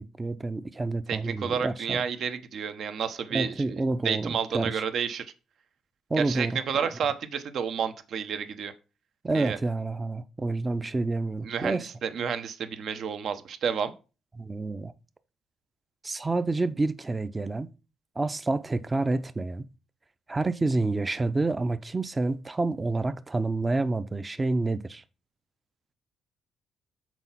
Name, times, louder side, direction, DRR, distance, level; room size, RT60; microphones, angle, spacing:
voice 1, 0.0-2.0 3.3-4.8 6.1-6.8 9.2-11.9 14.4-14.9 16.0-17.7 18.2-19.6 20.3-25.0, right 3 dB, 20° right, 0.5 m, -28 dB
voice 2, 1.1-5.3 6.2-8.7 9.3-9.6 11.4-13.9, right 7 dB, 65° right, 0.9 m, -30 dB
6.2 x 4.5 x 5.7 m
cardioid pair, 90°, 0 cm